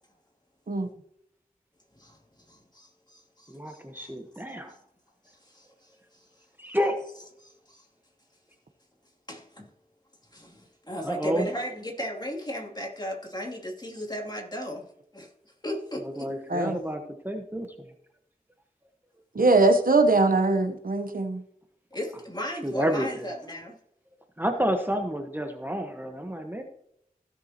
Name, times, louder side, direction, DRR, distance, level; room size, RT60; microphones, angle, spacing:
voice 1, 2.5-4.1 4.5-4.8 5.2-6.3 7.4-7.8 9.3-9.7 10.3-14.8 15.1-15.3 15.6-16.3 21.9-23.8, equal, 25° left, -1 dB, 2.7 m, -36 dB
voice 2, 3.5-4.7 6.6-7.0 11.0-11.5 16.2-17.7 22.6-23.3 24.4-26.6, equal, 15° right, 4 dB, 1.2 m, -29 dB
voice 3, 19.3-21.4, right 2 dB, 65° right, 7 dB, 0.9 m, -21 dB
16.0 x 6.9 x 2.9 m, 0.76 s
wide cardioid pair, 40°, 15 cm